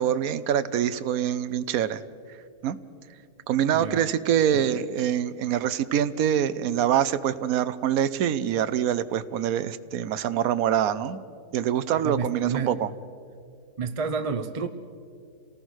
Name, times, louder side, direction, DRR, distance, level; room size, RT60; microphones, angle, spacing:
voice 1, 0.0-2.0 2.6-2.8 3.5-11.2 11.5-12.9, right 10 dB, 65° right, 13 dB, 1.2 m, -25 dB
voice 2, 3.7-4.1 4.5-4.9 12.0-12.8 13.8-14.7, right 5 dB, 30° right, 8 dB, 0.6 m, -30 dB
28.0 x 18.5 x 6.4 m, 2.3 s
omnidirectional pair, 1.7 m